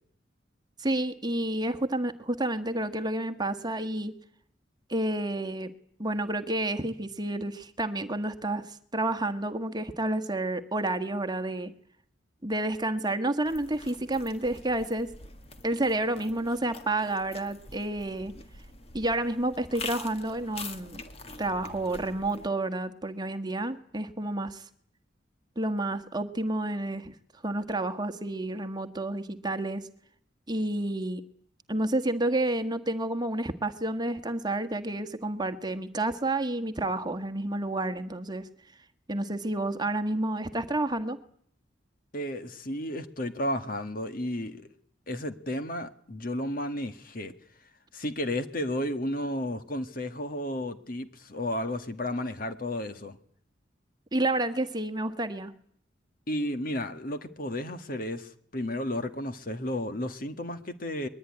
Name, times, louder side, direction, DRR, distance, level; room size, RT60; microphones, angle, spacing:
voice 1, 0.8-4.1 4.9-5.7 6.0-11.7 12.4-15.1 15.6-18.3 18.9-21.0 21.4-24.7 25.5-27.1 27.4-29.9 30.5-31.2 31.7-38.5 39.1-41.2 54.1-55.5, right 2 dB, 20° right, 8 dB, 1.5 m, -30 dB
sound 1, 13.4-22.5, left 3 dB, 35° left, 1.9 m, -45 dB
voice 2, 42.1-44.7 45.1-47.3 47.9-53.2 56.3-61.1, left 1 dB, 50° left, 9 dB, 1.7 m, -33 dB
22.5 x 21.5 x 9.9 m, 0.63 s
head